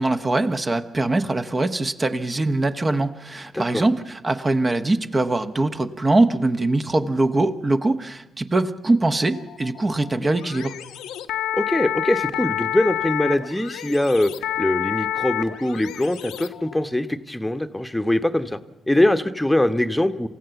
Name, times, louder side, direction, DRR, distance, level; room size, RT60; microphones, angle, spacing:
voice 1, 0.0-10.7, right 2 dB, 30° right, 8 dB, 1.2 m, -22 dB
sound 1, 9.1-16.8, left 11 dB, 75° left, 0.9 m, -29 dB
voice 2, 11.5-14.3 14.6-18.6 18.9-20.3, left 1 dB, 10° left, 9 dB, 1.1 m, -22 dB
27.5 x 15.0 x 7.1 m, 0.96 s
hypercardioid pair, 45°, 0 cm